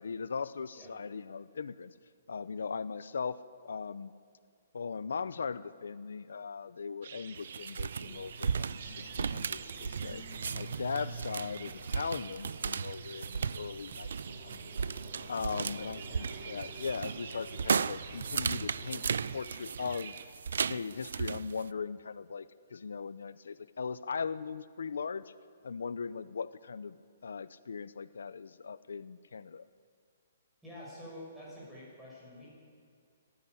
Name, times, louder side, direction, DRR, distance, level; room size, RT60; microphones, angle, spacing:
voice 1, 0.0-1.9 2.3-3.4 3.6-4.1 4.7-14.7 15.3-20.2 20.6-25.3 25.6-26.9 27.2-29.6, left 5 dB, 90° left, 16 dB, 0.7 m, -39 dB
sound 1, 7.0-20.2, right 7 dB, 45° right, 1.2 m, -49 dB
sound 2, 7.4-21.6, right 6 dB, 70° right, 0.4 m, -36 dB
sound 3, 7.9-19.4, right 3 dB, 85° right, 6.0 m, -47 dB
voice 2, 15.4-16.3 30.6-32.7, left 1 dB, 5° right, -7 dB, 6.2 m, -49 dB
18.5 x 14.5 x 9.7 m, 2.2 s
hypercardioid pair, 175°, 0 cm